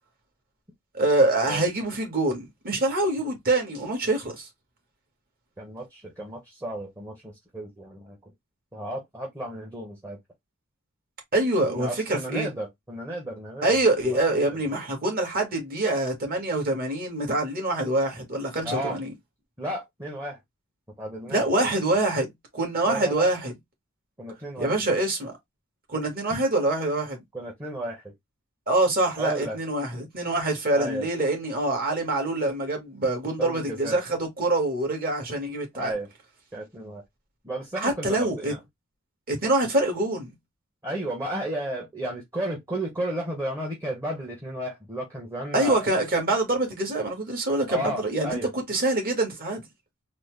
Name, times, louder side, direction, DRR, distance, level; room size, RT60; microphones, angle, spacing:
voice 1, 0.9-4.5 11.3-12.5 13.6-19.1 21.3-23.5 24.6-25.4 25.9-27.2 28.7-35.9 37.8-38.5 39.3-40.3 45.5-49.6, right 2 dB, 45° right, 1.5 m, -25 dB
voice 2, 5.6-8.2 8.7-10.2 11.7-13.8 14.1-14.6 18.6-19.0 19.6-20.4 21.0-21.7 22.8-23.3 24.2-24.8 26.3-26.4 27.3-28.0 29.2-29.6 30.7-31.1 33.4-34.0 35.8-36.1 36.5-37.0 37.4-38.6 40.8-45.9 47.7-48.5, right 1 dB, 15° right, 0.9 m, -33 dB
4.0 x 2.0 x 3.1 m
head